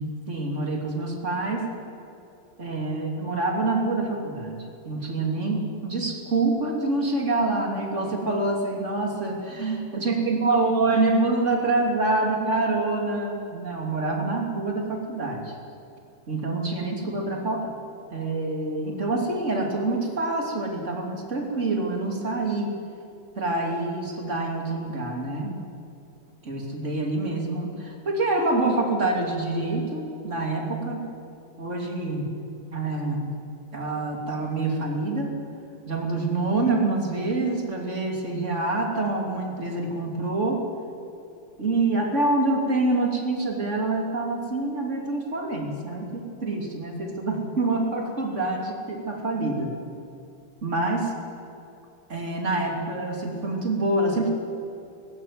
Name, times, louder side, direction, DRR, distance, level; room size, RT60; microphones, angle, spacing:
voice 1, 0.0-1.7 2.6-15.5 16.3-17.8 18.1-22.7 23.4-25.5 26.4-31.0 31.6-32.3 32.7-33.3 33.7-35.3 35.9-40.6 41.6-49.7 50.6-51.1 52.1-54.3, right 2 dB, 40° right, 1 dB, 3.4 m, -26 dB
19.0 x 15.5 x 9.6 m, 2.7 s
omnidirectional pair, 2.0 m